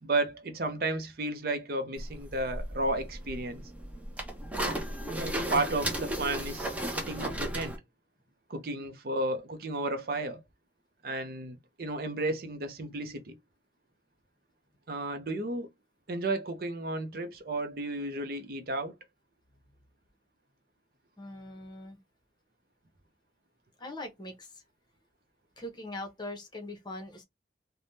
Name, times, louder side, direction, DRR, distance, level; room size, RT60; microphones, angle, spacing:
voice 1, 0.0-3.6 5.1-7.8 8.5-10.4 11.0-13.4 14.9-15.7 16.1-18.9, right 2 dB, 55° right, 0.6 m, -33 dB
sound 1, 2.0-7.8, right 1 dB, 10° right, 0.6 m, -35 dB
voice 2, 21.2-22.0 23.8-24.6 25.6-27.2, left 1 dB, 25° left, 0.8 m, -41 dB
3.4 x 2.1 x 2.6 m
head